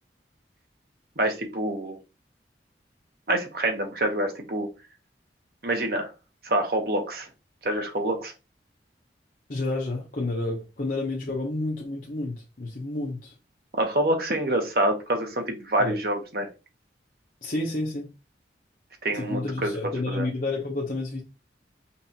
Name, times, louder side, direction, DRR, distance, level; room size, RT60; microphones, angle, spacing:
voice 1, 1.2-2.0 3.3-4.7 5.6-6.1 6.4-7.3 7.6-8.3 13.7-16.5 19.0-20.3, right 1 dB, 55° right, 1.0 m, -26 dB
voice 2, 9.5-13.3 15.8-15.9 17.4-18.1 19.1-21.2, left 2 dB, 50° left, 0.8 m, -30 dB
5.4 x 2.5 x 2.8 m
head